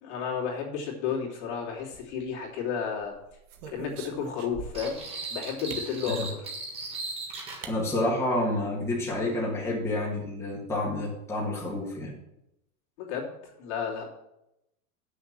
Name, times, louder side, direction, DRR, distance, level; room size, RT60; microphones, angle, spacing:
voice 1, 0.0-3.1 3.7-5.0 5.3-6.5 13.0-14.0, left 6 dB, 50° left, -1 dB, 2.9 m, -32 dB
sound 1, 1.8-2.5 3.0-5.0 5.7-5.9 7.0-7.1 7.6-7.8 8.1-8.2 8.5-8.9, right 6 dB, 45° right, 1.3 m, -44 dB
sound 2, 4.7-7.6, right 3 dB, 15° right, 1.5 m, -37 dB
voice 2, 7.7-12.1, left 1 dB, 5° left, -5 dB, 1.7 m, -29 dB
7.9 x 6.5 x 7.5 m, 0.86 s
supercardioid pair, 170°, 42 cm